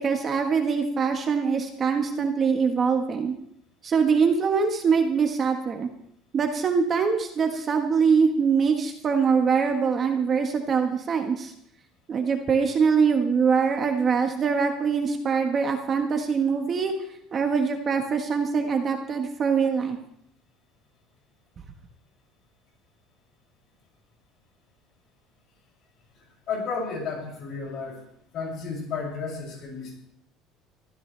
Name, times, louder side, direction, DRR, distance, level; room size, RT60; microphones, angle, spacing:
voice 1, 0.0-3.3 3.8-5.9 6.3-11.5 12.1-16.9 17.3-20.0, right 5 dB, 25° right, 4 dB, 1.4 m, -23 dB
voice 2, 26.1-28.0 28.3-30.0, left 4 dB, 40° left, -1 dB, 7.0 m, -33 dB
24.0 x 14.5 x 3.4 m, 0.71 s
cardioid pair, 170°, 0 cm